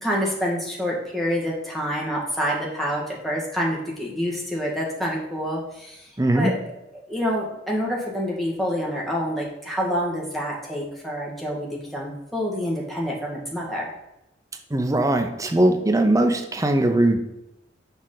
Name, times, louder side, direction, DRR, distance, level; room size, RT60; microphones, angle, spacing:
voice 1, 0.0-6.5 7.1-14.0, equal, ahead, -4 dB, 1.6 m, -27 dB
voice 2, 6.2-6.5 14.7-17.2, right 1 dB, 20° right, 4 dB, 0.5 m, -20 dB
6.7 x 4.8 x 3.8 m, 0.88 s
head